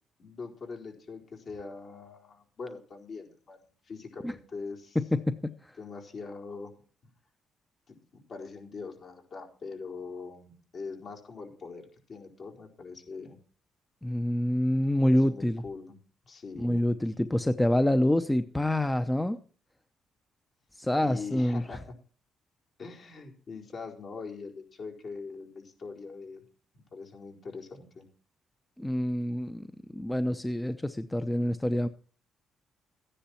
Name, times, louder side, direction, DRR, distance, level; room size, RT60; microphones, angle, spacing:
voice 1, 0.2-3.6 3.8-5.0 5.8-6.7 7.9-11.8 12.1-13.4 15.0-15.9 16.2-16.8 21.0-21.9 22.8-26.4 26.9-28.0, left 4 dB, 50° left, 2 dB, 4.4 m, -42 dB
voice 2, 5.0-5.5 14.0-15.6 16.6-19.4 20.8-21.6 28.8-29.7 29.9-31.9, left 1 dB, 10° left, 10 dB, 0.7 m, -26 dB
14.0 x 10.0 x 4.4 m, 0.42 s
cardioid pair, 90°, 0 cm